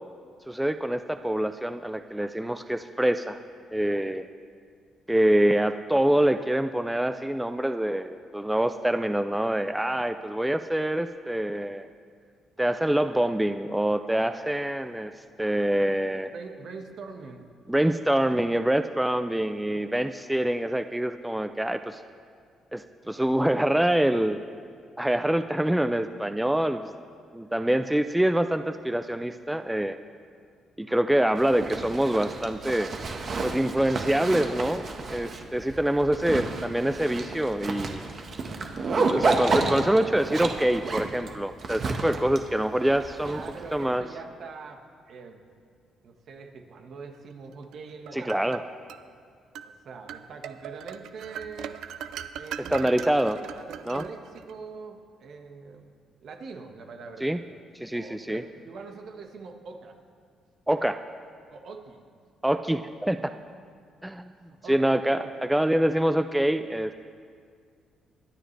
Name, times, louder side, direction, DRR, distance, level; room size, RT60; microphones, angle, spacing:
voice 1, 0.5-3.4 3.7-4.3 5.1-11.9 12.6-15.1 15.4-16.3 17.7-22.0 22.7-24.4 25.0-26.9 27.3-30.0 30.8-32.9 33.4-38.0 38.9-43.4 43.7-44.0 48.1-48.6 52.7-53.4 53.9-54.0 57.2-57.4 57.8-58.4 60.7-61.0 62.4-63.2 64.0-64.3 64.7-66.9, right 1 dB, 5° right, 9 dB, 0.5 m, -25 dB
voice 2, 16.3-17.5 43.2-45.4 46.0-48.4 49.6-51.8 52.3-57.4 57.9-60.0 61.5-62.0 64.3-65.5, right 4 dB, 65° right, 4 dB, 1.6 m, -43 dB
Zipper (clothing), 31.4-43.8, right 3 dB, 50° right, 1.4 m, -31 dB
sound 1, 47.7-49.0 49.5-49.7 50.1-54.5, right 9 dB, 85° right, 0.5 m, -39 dB
23.0 x 10.0 x 3.4 m, 2.1 s
cardioid pair, 90°, 0 cm